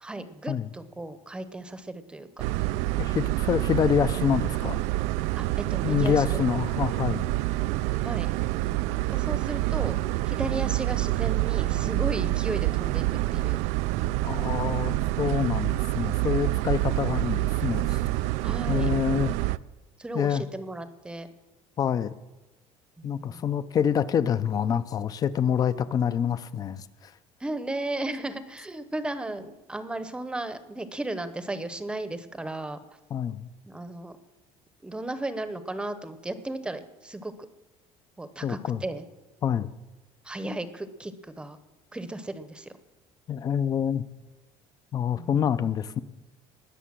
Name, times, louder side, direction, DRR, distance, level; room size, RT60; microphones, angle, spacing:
voice 1, 0.0-2.4 5.4-6.4 8.0-8.3 9.1-13.0 13.3-13.6 18.4-18.9 20.0-21.3 23.0-23.5 27.4-32.8 33.7-34.1 34.8-37.3 38.2-39.0 40.2-41.1 41.4-41.6 41.9-42.7 45.2-45.5, right 2 dB, 10° right, 12 dB, 0.9 m, -35 dB
sound 1, 2.4-19.6, right 17 dB, 75° right, 0.4 m, -27 dB
voice 2, 3.0-4.8 5.8-7.3 14.2-18.0 18.7-19.3 20.1-20.4 21.8-22.1 23.0-27.1 33.1-33.5 38.4-38.8 39.4-39.7 43.3-44.0 44.9-46.0, left 8 dB, 30° left, 15 dB, 0.6 m, -26 dB
20.0 x 6.8 x 7.5 m, 1.1 s
cardioid pair, 150°, 12 cm